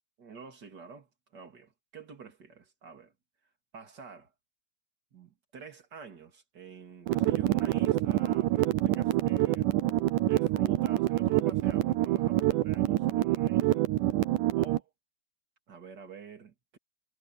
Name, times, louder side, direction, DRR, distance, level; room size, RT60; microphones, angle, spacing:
voice 1, 0.2-1.1 1.3-3.1 3.7-4.3 5.1-9.7 10.3-13.9 14.6-14.9 15.7-16.8, right 5 dB, 30° right, 3.0 m, -48 dB
sound 1, 7.1-14.8, right 16 dB, 80° right, 2.1 m, -26 dB
omnidirectional pair, 3.9 m